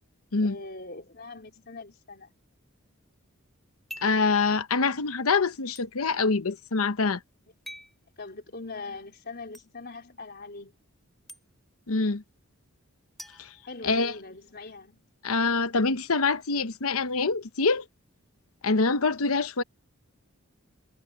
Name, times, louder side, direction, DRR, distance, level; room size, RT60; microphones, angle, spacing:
voice 1, 0.4-2.3 8.2-10.7 13.7-15.1, left 3 dB, 50° left, 4.2 m, -42 dB
sound 1, 3.9-4.3 5.7-5.9 7.6-8.0 9.5-9.7 11.3-11.4 13.2-14.3, equal, ahead, 3.2 m, -45 dB
voice 2, 4.0-7.2 11.9-12.2 13.4-13.5 13.8-14.1 15.2-17.8 18.6-19.6, left 4 dB, 85° left, 1.0 m, -25 dB
head